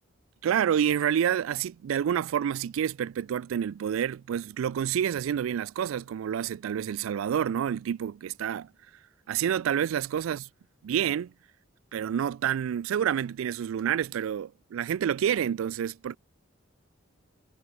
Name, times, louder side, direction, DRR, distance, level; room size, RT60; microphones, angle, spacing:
voice 1, 0.4-8.7 9.3-10.5 10.8-11.3 11.9-16.2, right 9 dB, 85° right, 0.3 m, -28 dB
head